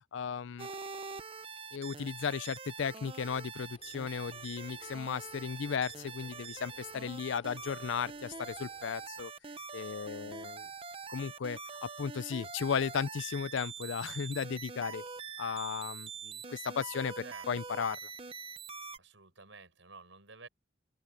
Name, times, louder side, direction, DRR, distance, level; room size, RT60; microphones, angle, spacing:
voice 1, 0.1-0.7 1.7-9.3 9.7-10.7 11.1-15.1 15.4-17.1 17.5-18.0, left 6 dB, 70° left, 0.4 m, -35 dB
sound 1, 0.6-19.0, right 5 dB, 30° right, 0.8 m, -44 dB
sound 2, 3.7-9.1, left 2 dB, 35° left, 3.3 m, -62 dB
voice 2, 10.2-10.6 17.2-17.5 18.9-20.5, right 4 dB, 70° right, 5.7 m, -52 dB
open air
head